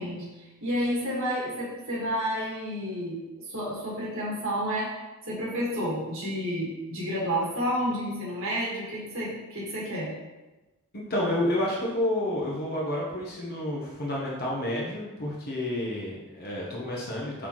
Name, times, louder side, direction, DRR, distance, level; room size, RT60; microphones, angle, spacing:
voice 1, 0.0-4.9 5.3-10.1, equal, 60° right, -6 dB, 2.0 m, -30 dB
voice 2, 10.9-17.5, left 1 dB, 45° left, -4 dB, 1.2 m, -30 dB
7.8 x 4.2 x 3.2 m, 1.1 s
head